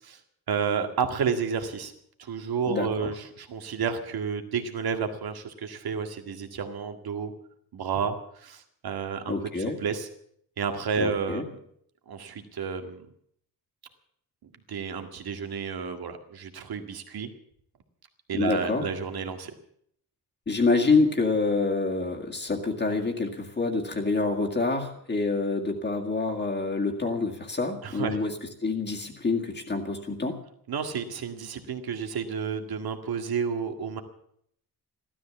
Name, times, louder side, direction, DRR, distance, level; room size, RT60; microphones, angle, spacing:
voice 1, 0.5-1.9 2.2-7.3 7.7-10.1 10.6-11.6 12.1-13.1 14.4-17.3 18.3-19.5 27.8-28.2 30.7-34.0, right 6 dB, 75° right, 6 dB, 1.9 m, -31 dB
voice 2, 2.7-3.1 9.3-9.8 11.0-11.4 18.3-18.8 20.5-28.3 28.6-30.4, left 3 dB, 30° left, 1 dB, 2.0 m, -27 dB
15.5 x 13.0 x 7.1 m, 0.68 s
wide cardioid pair, 180°, 38 cm